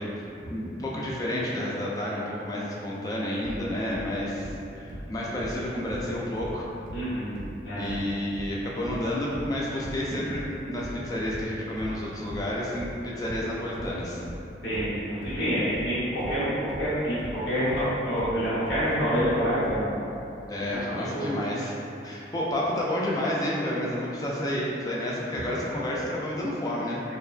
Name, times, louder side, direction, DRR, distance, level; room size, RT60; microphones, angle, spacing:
voice 1, 0.0-6.7 7.7-14.2 20.5-21.7 22.0-27.0, left 1 dB, 20° left, -5 dB, 0.3 m, -30 dB
sound 1, 3.4-6.6 6.9-19.9, equal, 50° right, 0.5 m, -39 dB
voice 2, 6.9-7.9 14.6-16.5 16.8-19.9 21.0-21.4, equal, 80° left, -12 dB, 0.9 m, -27 dB
2.9 x 2.1 x 2.4 m, 2.8 s
head